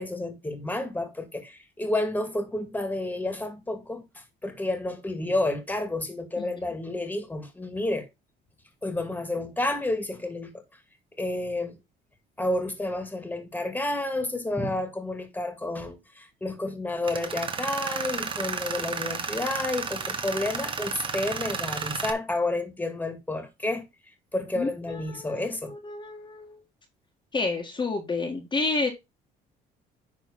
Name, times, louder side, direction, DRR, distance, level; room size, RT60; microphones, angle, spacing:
voice 1, 0.0-8.1 8.8-10.6 11.2-11.8 12.4-23.9 24.3-25.8, left 2 dB, 10° left, 2.2 m, -30 dB
Tools, 17.0-22.1, right 5 dB, 30° right, 1.4 m, -32 dB
voice 2, 24.6-26.6 27.3-28.9, left 3 dB, 25° left, 1.8 m, -30 dB
10.5 x 3.7 x 5.3 m
cardioid pair, 110°, 17 cm